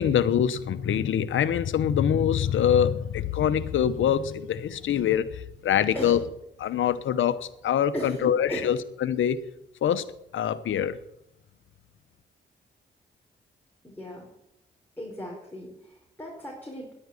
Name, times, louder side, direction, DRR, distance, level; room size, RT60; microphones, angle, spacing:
voice 1, 0.0-6.2 6.6-9.4 9.8-10.0 10.3-11.0, left 9 dB, 80° left, 14 dB, 1.0 m, -24 dB
voice 2, 7.9-8.7 13.8-14.3 15.0-16.9, equal, 10° left, -3 dB, 4.9 m, -36 dB
11.0 x 9.0 x 9.7 m, 0.82 s
cardioid pair, 55°, 20 cm